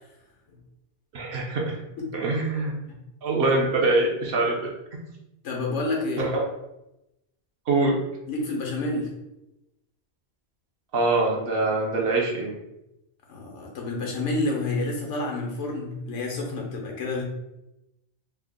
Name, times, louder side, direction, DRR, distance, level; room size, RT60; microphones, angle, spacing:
voice 1, 1.1-1.8 2.1-2.7 3.2-5.0 6.2-6.3 7.7-8.0 10.9-12.5, right 2 dB, 60° right, -1 dB, 0.8 m, -24 dB
voice 2, 5.4-6.3 8.3-9.1 13.3-17.2, left 2 dB, 80° left, 0 dB, 1.1 m, -29 dB
3.4 x 2.0 x 3.6 m, 0.91 s
omnidirectional pair, 1.2 m